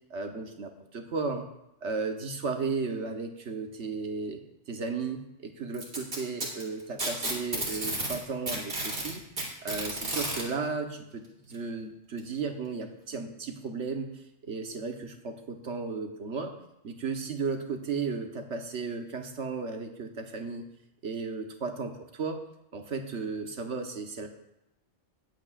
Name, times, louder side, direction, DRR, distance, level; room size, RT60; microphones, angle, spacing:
voice 1, 0.1-1.5 1.8-4.4 4.7-9.2 9.6-16.5 16.8-20.7 21.0-22.4 22.7-24.3, right 4 dB, 75° right, 4 dB, 1.4 m, -34 dB
Packing tape duct tape, 5.7-8.2 8.5-10.4 11.5-11.6 12.2-12.3 13.1-13.2, right 1 dB, 50° right, 2.8 m, -32 dB
19.5 x 8.4 x 2.5 m, 0.87 s
omnidirectional pair, 1.2 m